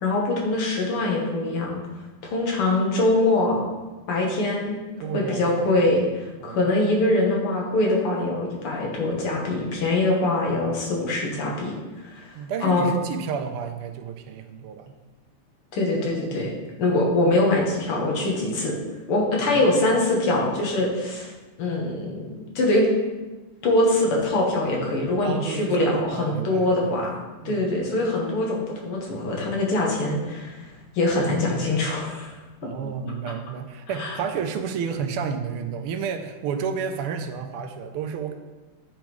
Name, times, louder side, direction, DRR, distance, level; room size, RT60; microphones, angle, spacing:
voice 1, 0.0-1.8 2.2-3.6 4.1-4.8 5.1-11.8 12.0-12.3 12.6-12.9 15.7-16.5 16.8-18.8 19.1-21.3 21.6-22.9 23.6-30.6 31.0-32.4 34.0-34.1, left 2 dB, 80° left, -1 dB, 2.2 m, -23 dB
voice 2, 5.0-5.9 6.4-6.7 12.3-15.0 19.4-19.9 25.2-27.8 32.6-38.3, right 6 dB, 85° right, 7 dB, 1.5 m, -31 dB
9.1 x 5.2 x 3.1 m, 1.2 s
omnidirectional pair, 2.4 m